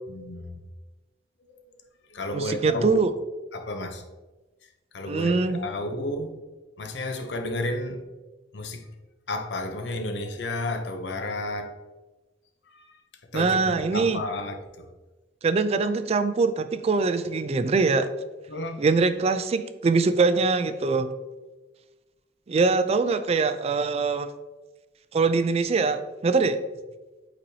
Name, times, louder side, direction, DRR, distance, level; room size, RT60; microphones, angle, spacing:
voice 1, 0.1-0.5 2.1-3.0 3.5-4.0 4.9-6.4 6.8-8.0 8.5-8.9 9.3-11.7 12.7-12.9 13.3-14.9 18.5-18.8, left 1 dB, 80° left, 0.7 m, -32 dB
voice 2, 2.3-3.1 5.0-5.6 13.3-14.2 15.4-18.1 18.8-21.1 22.5-24.3 25.1-26.6, right 4 dB, 35° right, 0.3 m, -23 dB
8.3 x 4.1 x 2.8 m
head